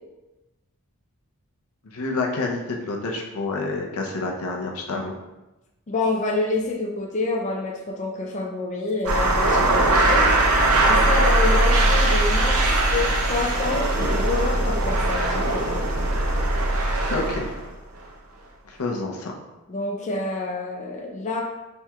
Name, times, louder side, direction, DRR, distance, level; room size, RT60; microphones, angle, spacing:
voice 1, 1.8-5.1 17.1-17.4 18.6-19.3, left 3 dB, 75° left, 0 dB, 0.6 m, -28 dB
voice 2, 5.9-12.5 12.9-15.9 19.7-21.4, left 3 dB, 35° left, -1 dB, 0.4 m, -28 dB
sound 1, 9.1-17.7, right 2 dB, 85° right, 0.7 m, -20 dB
4.4 x 3.5 x 2.3 m, 1.0 s
head